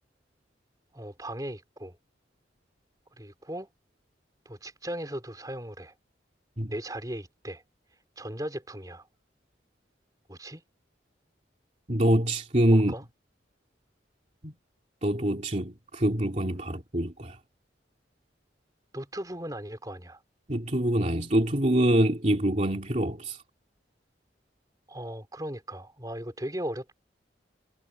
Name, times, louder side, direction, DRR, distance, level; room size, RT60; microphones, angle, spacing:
voice 1, 0.9-2.0 3.2-3.7 4.4-5.9 6.7-7.6 8.2-9.1 10.3-10.6 12.7-13.0 18.9-20.2 24.9-26.9, right 1 dB, 20° right, 4.6 m, -37 dB
voice 2, 11.9-12.9 14.4-14.5 15.0-17.4 20.5-23.4, right 1 dB, 40° right, 2.7 m, -25 dB
head